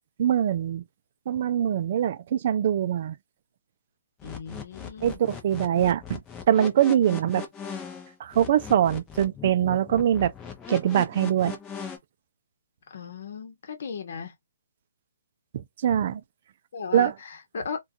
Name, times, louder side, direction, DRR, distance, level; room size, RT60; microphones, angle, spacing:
voice 1, 0.2-0.8 1.3-3.2 5.0-6.2 6.5-7.4 8.2-10.3 10.7-11.6 15.8-16.2 16.9-17.1, right 10 dB, 50° right, 0.3 m, -23 dB
voice 2, 4.2-5.2 7.1-7.2 12.9-14.3 15.9-16.2 16.7-17.8, left 6 dB, 60° left, 0.8 m, -37 dB
sound 1, 4.2-12.0, left 6 dB, 15° left, 0.6 m, -39 dB
2.3 x 2.3 x 2.6 m
hypercardioid pair, 150°, 0 cm